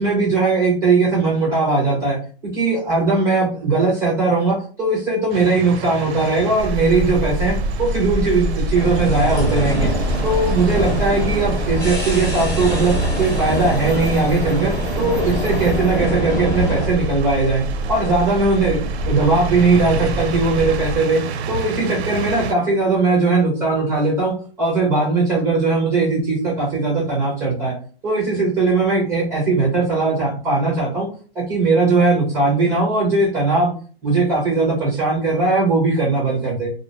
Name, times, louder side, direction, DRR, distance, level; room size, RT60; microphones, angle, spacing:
voice 1, 0.0-2.2 2.5-9.9 10.2-21.2 21.5-27.8 28.0-31.1 31.4-33.7 34.0-36.7, right 3 dB, 10° right, -4 dB, 0.4 m, -19 dB
sound 1, 5.3-22.5, right 5 dB, 85° right, 0.5 m, -30 dB
sound 2, 6.6-21.0, equal, 50° left, 0.7 m, -26 dB
sound 3, 8.7-16.9, equal, 10° left, 0.9 m, -25 dB
2.3 x 2.1 x 2.7 m, 0.40 s
hypercardioid pair, 135°, 31 cm